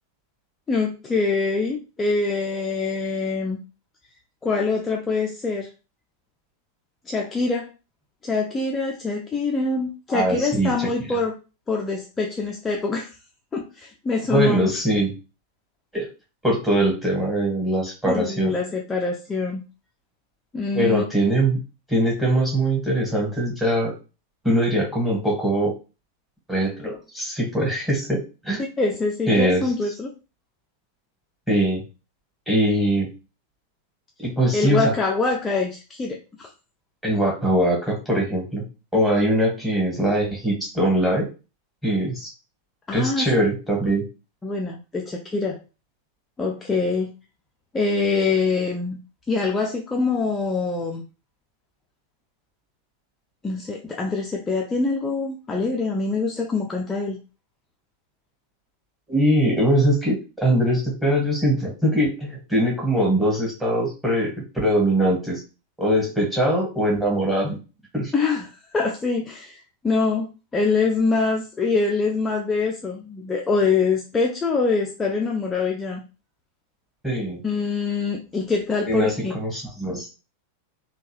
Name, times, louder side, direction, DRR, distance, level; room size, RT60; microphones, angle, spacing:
voice 1, 0.7-3.6 4.4-5.7 7.1-7.7 8.2-11.4 11.7-13.2 13.5-14.7 18.1-19.6 20.5-21.0 28.8-30.1 34.5-36.5 42.9-43.3 44.4-45.6 46.4-47.1 47.7-49.0 49.3-51.0 53.4-57.2 68.1-76.0 77.4-79.3, left 4 dB, 15° left, 0 dB, 0.4 m, -24 dB
voice 2, 10.1-10.9 14.3-15.1 15.9-16.0 16.4-18.5 20.7-21.6 21.9-23.9 24.4-25.7 26.5-28.6 29.3-29.6 31.5-31.8 32.5-33.1 34.2-34.9 37.0-38.6 38.9-41.3 41.8-42.3 42.9-44.0 59.1-65.4 65.8-67.6 67.9-68.1 77.0-77.4 78.9-80.1, right 1 dB, 5° right, -1 dB, 1.6 m, -22 dB
3.4 x 2.3 x 3.1 m, 0.31 s
figure-of-eight pair, 90°, 0 cm